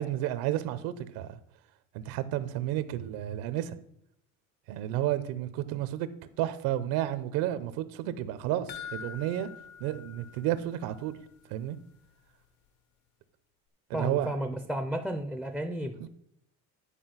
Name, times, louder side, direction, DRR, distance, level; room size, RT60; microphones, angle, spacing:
voice 1, 0.0-1.4 1.9-3.8 4.7-6.1 6.4-9.5 9.8-11.2 11.5-11.8 13.9-14.3 16.0-16.1, right 13 dB, 85° right, 0.9 m, -31 dB
sound 1, 8.7-11.2 11.5-11.6 12.0-12.1, left 8 dB, 80° left, 1.1 m, -45 dB
voice 2, 13.9-16.1, right 1 dB, ahead, 0.4 m, -33 dB
10.0 x 4.8 x 5.8 m
cardioid pair, 170°, 34 cm